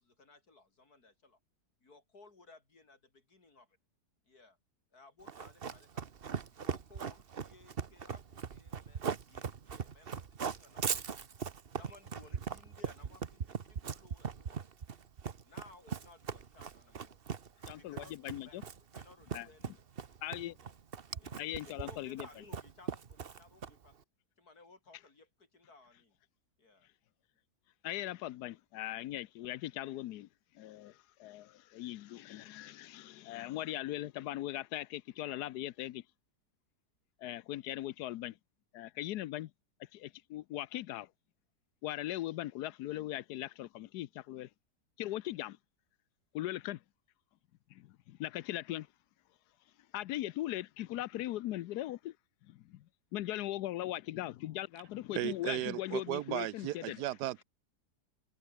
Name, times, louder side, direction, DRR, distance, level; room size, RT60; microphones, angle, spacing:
voice 1, 0.0-1.4 1.8-3.7 4.2-4.6 4.9-6.1 6.5-11.2 11.7-14.6 15.4-17.2 17.7-19.7 20.6-20.8 21.2-24.0 24.4-26.2 26.6-26.9, left 3 dB, 70° left, 4.8 m, -60 dB
Run, 5.3-23.9, right 6 dB, 40° right, 1.1 m, -40 dB
voice 2, 17.7-18.6 19.3-19.5 20.2-20.6 21.4-22.3 27.8-30.3 30.5-36.0 37.2-38.4 38.7-39.5 39.9-41.1 41.8-44.5 45.0-45.6 46.3-46.8 47.7-48.9 49.9-52.1 52.5-52.9 53.1-57.0, left 14 dB, 85° left, 1.2 m, -39 dB
voice 3, 55.1-57.4, right 14 dB, 85° right, 1.3 m, -35 dB
omnidirectional pair, 1.7 m